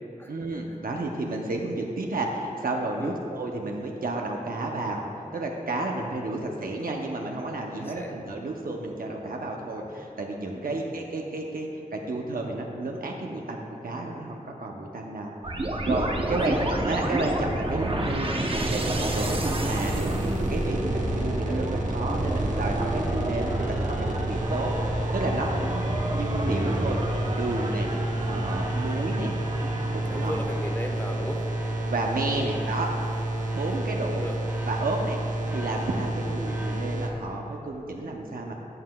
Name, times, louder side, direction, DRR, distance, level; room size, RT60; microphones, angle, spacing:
voice 1, 0.3-5.0 5.3-15.3 15.8-18.4 18.7-23.6 24.1-27.0 27.3-27.9 28.3-29.3 29.9-30.4 31.8-32.9 33.5-34.3 34.7-38.5, right 2 dB, 80° right, 0 dB, 0.7 m, -31 dB
voice 2, 7.7-8.2 10.7-10.8 16.2-16.6 30.1-31.5 32.3-32.7 34.1-34.4, left 1 dB, 15° left, 2 dB, 1.0 m, -36 dB
sound 1, 15.4-30.4, right 1 dB, 40° right, 0.7 m, -30 dB
sound 2, 18.5-37.1, right 1 dB, 60° right, 1.0 m, -30 dB
sound 3, 23.0-36.8, right 1 dB, 15° right, 1.1 m, -43 dB
13.5 x 7.5 x 2.3 m, 2.9 s
wide cardioid pair, 75°, 15 cm